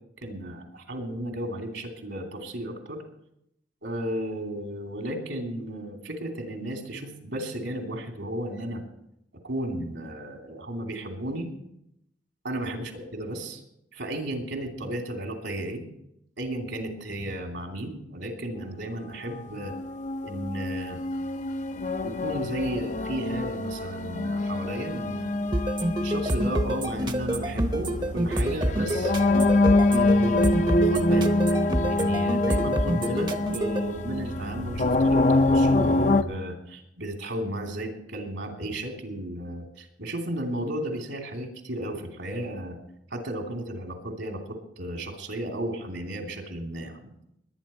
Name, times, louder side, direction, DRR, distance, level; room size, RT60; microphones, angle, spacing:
voice 1, 0.2-3.0 3.8-8.8 9.4-11.5 12.4-13.6 13.9-15.8 16.4-19.7 20.2-21.0 22.0-25.3 26.0-29.1 29.9-30.4 30.8-31.3 31.8-42.7 43.1-47.1, right 1 dB, 75° right, 2 dB, 3.0 m, -34 dB
sound 1, 19.7-36.2, left 2 dB, 40° left, 0.6 m, -25 dB
sound 2, 25.5-33.8, right 1 dB, 25° right, 0.9 m, -27 dB
20.5 x 9.9 x 4.4 m, 0.80 s
head